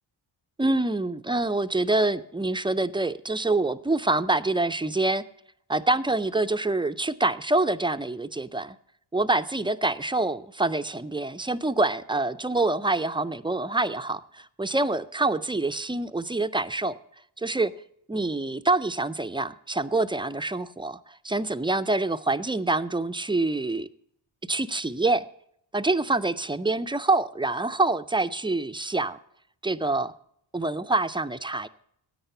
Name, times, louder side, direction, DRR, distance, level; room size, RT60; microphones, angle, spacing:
voice 1, 0.6-5.2 5.7-8.8 9.1-16.9 17.4-17.7 18.1-23.9 24.5-25.2 25.7-29.2 29.6-30.1 30.5-31.7, right 2 dB, 10° right, 0.4 m, -26 dB
10.0 x 8.9 x 6.6 m
cardioid pair, 90°, 46 cm